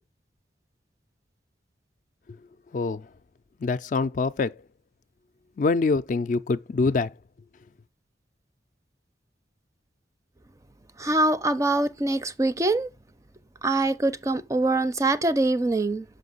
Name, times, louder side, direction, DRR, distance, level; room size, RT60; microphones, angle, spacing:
voice 1, 3.6-4.5 5.6-7.1, left 3 dB, 45° left, 0.3 m, -24 dB
voice 2, 11.0-12.9 13.6-16.0, right 2 dB, 20° right, 0.4 m, -24 dB
6.3 x 5.1 x 3.9 m
head